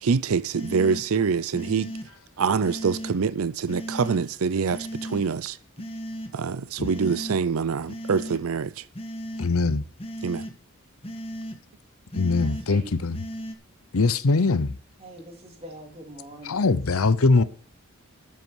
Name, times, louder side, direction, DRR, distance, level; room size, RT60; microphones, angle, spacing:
voice 1, 0.0-1.9 2.4-5.6 6.3-8.8 10.2-10.5, right 5 dB, 75° right, 0.5 m, -25 dB
sound 1, 0.5-1.0 1.5-2.1 2.6-3.1 3.7-4.2 4.7-5.2 5.8-6.3 6.8-7.4 7.9-8.4 8.9-9.5 10.0-10.5 11.0-11.6 12.1-12.6 13.1-13.5, equal, 25° left, 1.4 m, -35 dB
voice 2, 9.4-9.8 12.1-13.2 13.9-14.8 16.4-17.4, left 3 dB, 75° left, 0.8 m, -22 dB
voice 3, 12.3-12.9 15.0-16.7 17.3-17.5, right 1 dB, 30° right, 3.4 m, -43 dB
12.5 x 8.2 x 4.7 m
head